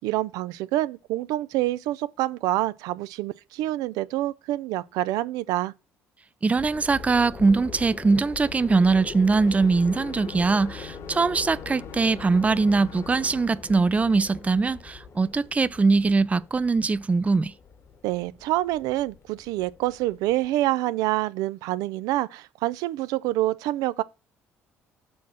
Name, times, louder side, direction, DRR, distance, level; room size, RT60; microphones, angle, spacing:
voice 1, 0.0-5.7 18.0-24.0, right 16 dB, 75° right, 0.5 m, -27 dB
voice 2, 6.4-17.5, right 4 dB, 20° right, 0.4 m, -22 dB
sound 1, 6.5-20.5, left 5 dB, 40° left, 1.1 m, -42 dB
sound 2, 9.4-13.4, left 9 dB, 75° left, 1.5 m, -45 dB
6.5 x 4.2 x 6.1 m
hypercardioid pair, 65°, 6 cm